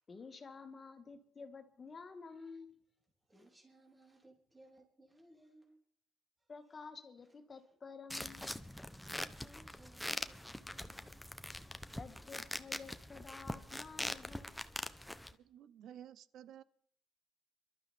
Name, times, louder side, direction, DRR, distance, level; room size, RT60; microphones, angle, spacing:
voice 1, 0.1-2.8 6.5-8.6 12.0-14.7, left 4 dB, 40° left, 1.9 m, -51 dB
voice 2, 3.2-5.8 6.4-6.5 7.5-7.7 8.8-11.2, right 1 dB, 20° right, 3.8 m, -63 dB
sound 1, 8.1-15.3, left 1 dB, 5° left, 0.9 m, -43 dB
voice 3, 15.4-16.6, right 10 dB, 80° right, 0.7 m, -53 dB
27.0 x 12.0 x 3.5 m
cardioid pair, 90°, 0 cm